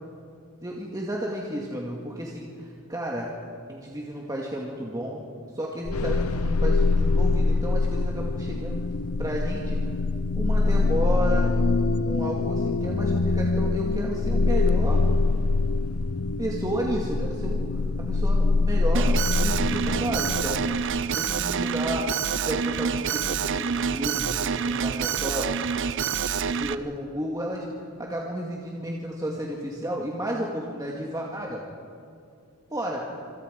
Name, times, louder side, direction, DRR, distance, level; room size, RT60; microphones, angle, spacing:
voice 1, 0.6-3.3 3.7-5.3 5.5-8.8 9.2-9.8 10.4-11.5 12.0-15.0 16.4-20.7 21.1-25.7 26.5-27.7 28.0-31.6 32.7-33.0, equal, 15° right, -2 dB, 2.3 m, -32 dB
sound 1, 5.8-20.8, left 3 dB, 80° left, 0.8 m, -24 dB
Alarm, 18.9-26.7, right 6 dB, 60° right, 0.6 m, -27 dB
26.5 x 26.0 x 5.3 m, 2.4 s
head